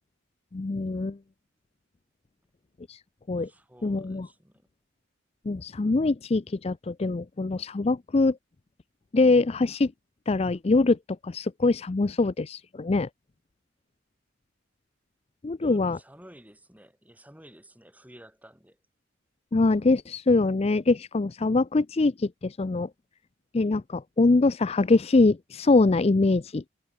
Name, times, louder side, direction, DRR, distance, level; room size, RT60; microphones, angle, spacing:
voice 1, 0.5-1.2 2.9-3.0 3.3-3.5 3.8-4.3 5.5-8.4 9.1-9.9 10.3-11.0 11.2-13.1 15.4-16.0 19.5-22.9 23.5-26.6, left 3 dB, 30° left, 0.4 m, -23 dB
voice 2, 3.4-4.7 15.6-18.8, equal, 10° right, 5.0 m, -52 dB
head